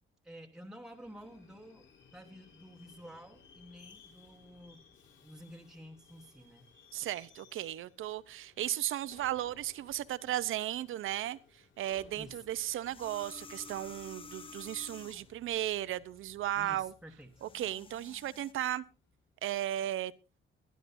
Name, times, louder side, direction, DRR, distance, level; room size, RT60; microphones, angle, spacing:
voice 1, 0.2-1.9 2.1-4.8 5.2-6.7 12.2-12.4 16.5-17.4, equal, 5° right, 1.2 m, -51 dB
Subway metro underground, 0.9-19.4, left 6 dB, 65° left, 3.5 m, -62 dB
voice 2, 6.9-16.9 17.4-18.8 19.4-20.1, right 12 dB, 75° right, 0.8 m, -35 dB
sound 1, 12.8-15.4 17.2-18.5, left 4 dB, 25° left, 0.7 m, -50 dB
22.0 x 11.5 x 2.6 m
cardioid pair, 175°, 21 cm